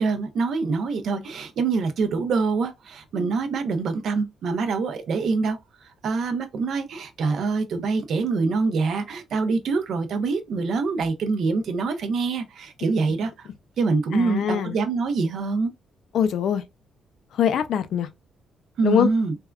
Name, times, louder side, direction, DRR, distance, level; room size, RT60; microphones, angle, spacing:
voice 1, 0.0-5.6 6.0-13.5 13.8-15.7 18.8-19.4, right 4 dB, 55° right, 0.5 m, -25 dB
voice 2, 14.1-14.8 16.1-16.6 17.3-18.1 18.8-19.1, left 8 dB, 60° left, 0.4 m, -22 dB
3.4 x 2.2 x 2.2 m
cardioid pair, 145°, 0 cm